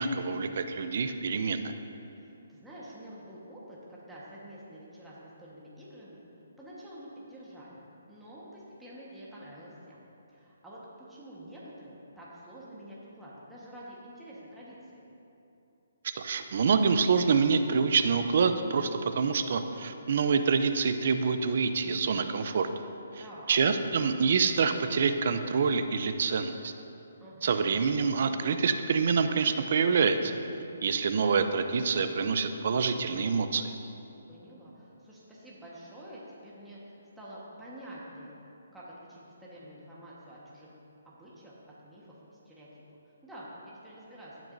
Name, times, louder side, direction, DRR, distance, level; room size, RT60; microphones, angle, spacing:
voice 1, 0.0-1.7 16.1-22.7 23.5-26.7 27.4-30.4 30.8-33.7, right 5 dB, 55° right, 9 dB, 0.6 m, -26 dB
voice 2, 2.1-6.2 6.6-7.8 8.1-10.0 10.3-10.8 11.1-15.0 23.2-23.6 27.2-27.6 34.3-38.3 38.7-40.8 41.0-41.5 41.8-42.7 43.2-43.5 43.8-44.4, right 1 dB, 5° right, -8 dB, 1.4 m, -48 dB
17.0 x 6.0 x 2.7 m, 2.8 s
hypercardioid pair, 155°, 0 cm